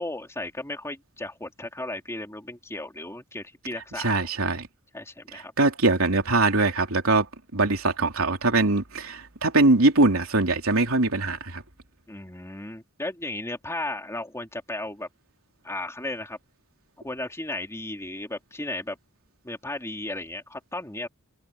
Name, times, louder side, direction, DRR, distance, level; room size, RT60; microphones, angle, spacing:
voice 1, 0.0-4.2 4.9-5.5 12.1-15.1 15.6-16.4 17.0-19.0 19.4-21.1, left 2 dB, 15° left, 3.0 m, -35 dB
voice 2, 4.0-4.7 5.6-7.3 7.5-11.6, right 2 dB, 80° right, 3.5 m, -22 dB
head